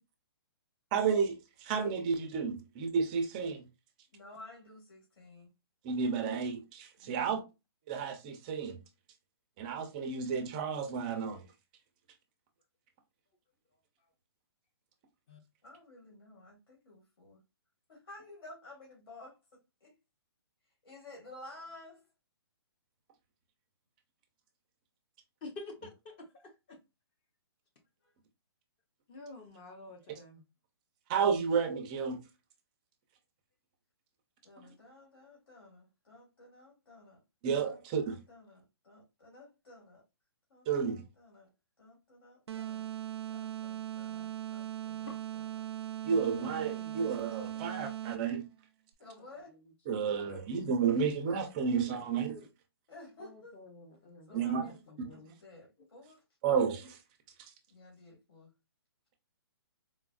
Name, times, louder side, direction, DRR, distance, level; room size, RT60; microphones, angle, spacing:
voice 1, 0.9-3.7 5.8-7.4 7.9-8.8 9.6-11.4 30.1-30.2 31.1-32.2 34.6-34.7 37.4-38.2 40.7-41.0 46.0-48.5 49.9-52.4 54.3-54.6 56.4-57.0, right 6 dB, 20° right, 0.4 m, -31 dB
voice 2, 4.1-5.5 7.0-7.4 15.6-17.4 17.9-19.4 19.8-19.9 20.8-22.0 28.0-28.1 34.4-37.2 37.6-40.0 40.5-41.5 41.8-42.9 43.3-45.6 49.0-49.6 52.9-53.6 54.3-54.8 55.1-56.2 57.7-58.5, left 2 dB, 70° left, 1.9 m, -53 dB
voice 3, 25.4-26.1 26.7-26.8 29.1-30.4 46.7-46.9 47.4-47.6 50.2-50.4 53.8-54.7 55.1-55.3, left 2 dB, 25° left, 0.6 m, -48 dB
sound 1, 42.5-48.4, right 12 dB, 90° right, 0.4 m, -39 dB
3.9 x 2.4 x 2.3 m
hypercardioid pair, 165°, 13 cm